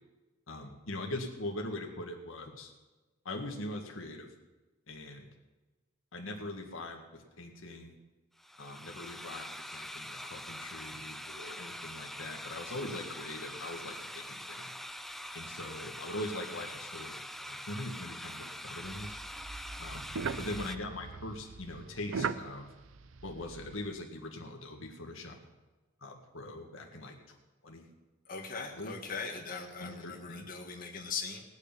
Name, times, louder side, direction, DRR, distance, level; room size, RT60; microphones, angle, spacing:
voice 1, 0.5-2.7 3.3-4.3 4.9-5.3 6.1-8.0 8.6-14.7 15.3-19.2 19.8-20.1 20.4-22.7 23.2-25.4 26.0-27.4 27.6-27.9 28.6-28.9 29.8-30.4, left 1 dB, 85° left, 2 dB, 1.8 m, -42 dB
sound 1, 8.4-20.8, equal, ahead, 0.4 m, -44 dB
sound 2, 18.8-23.9, right 5 dB, 80° right, 0.6 m, -40 dB
voice 2, 28.3-31.4, left 5 dB, 45° left, 0 dB, 1.8 m, -40 dB
19.0 x 6.6 x 9.0 m, 1.2 s
head